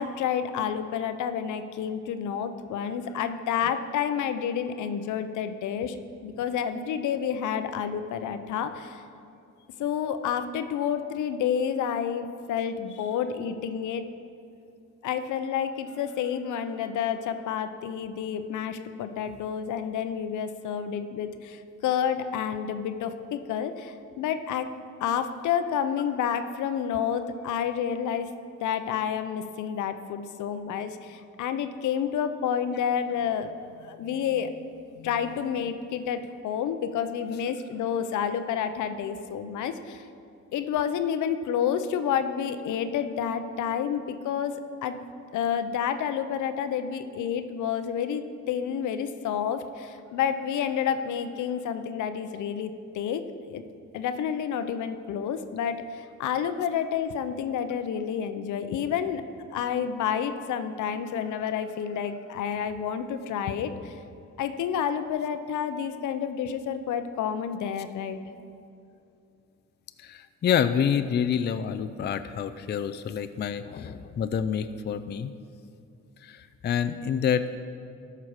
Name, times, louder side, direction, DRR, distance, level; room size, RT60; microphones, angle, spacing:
voice 1, 0.0-9.0 9.8-14.1 15.0-24.7 25.0-28.3 28.6-33.5 33.8-34.7 35.0-40.0 40.5-44.6 44.8-45.0 45.3-53.6 53.9-59.2 59.5-64.0 64.4-68.2, left 8 dB, 75° left, 10 dB, 0.7 m, -29 dB
voice 2, 70.0-75.3 76.2-77.6, left 8 dB, 35° left, 11 dB, 0.4 m, -27 dB
13.0 x 5.8 x 4.8 m, 2.6 s
cardioid pair, 90°, 30 cm